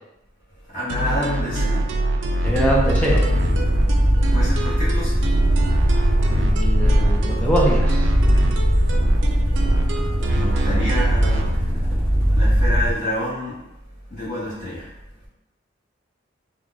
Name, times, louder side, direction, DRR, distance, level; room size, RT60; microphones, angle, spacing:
voice 1, 0.6-2.5 3.6-6.4 8.2-10.1 10.3-13.6 14.1-14.9, left 1 dB, 50° left, -9 dB, 0.9 m, -31 dB
sound 1, 0.9-11.6, right 1 dB, 70° right, 0.4 m, -24 dB
sound 2, 2.4-13.0, equal, 30° left, 1.1 m, -20 dB
voice 2, 2.4-3.2 6.2-8.1, right 1 dB, 5° left, -4 dB, 0.5 m, -23 dB
3.8 x 2.2 x 2.3 m, 0.88 s
head